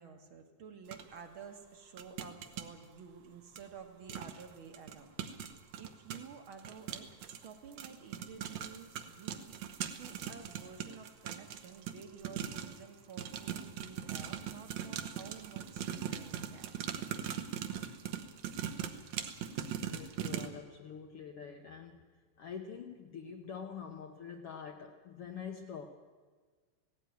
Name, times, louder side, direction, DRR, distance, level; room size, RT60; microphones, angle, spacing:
voice 1, 0.0-5.2 5.8-16.9, right 6 dB, 50° right, 6 dB, 1.8 m, -51 dB
sound 1, 0.9-1.0 2.0-2.7 3.6-3.7 4.1-4.4 4.7-12.8 13.2-20.5, right 9 dB, 65° right, 2.2 m, -40 dB
voice 2, 19.9-22.1 22.4-25.9, left 7 dB, 70° left, 4 dB, 1.4 m, -45 dB
17.0 x 17.0 x 9.4 m, 1.5 s
omnidirectional pair, 3.8 m